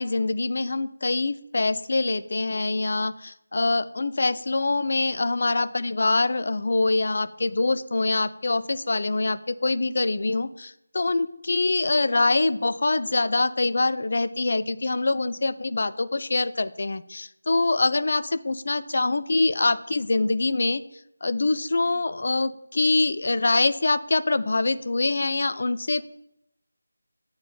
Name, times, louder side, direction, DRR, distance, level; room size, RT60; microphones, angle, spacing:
voice 1, 0.0-20.8 21.2-26.1, left 3 dB, 45° left, 14 dB, 0.3 m, -24 dB
8.0 x 4.4 x 3.9 m, 0.81 s
figure-of-eight pair, 165°, 0 cm